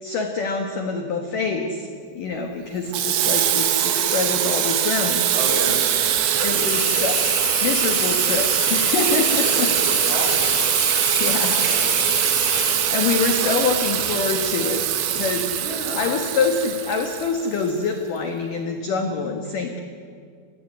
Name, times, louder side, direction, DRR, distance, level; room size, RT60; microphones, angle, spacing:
voice 1, 0.0-5.3 6.3-7.2 7.6-9.7 11.2-11.7 12.5-14.8 15.1-19.8, left 4 dB, 65° left, 4 dB, 2.1 m, -25 dB
Water tap faucet / Sink (filling or washing), 2.9-17.7, right 10 dB, 70° right, 3.5 m, -22 dB
voice 2, 5.3-6.1 9.2-10.6 11.6-11.8 12.5-13.6 13.9-14.0 15.5-16.1, right 1 dB, 50° right, -1 dB, 5.6 m, -32 dB
sound 1, 6.7-12.8, left 5 dB, 40° left, 3.2 m, -29 dB
29.5 x 15.5 x 9.4 m, 2.2 s
omnidirectional pair, 5.9 m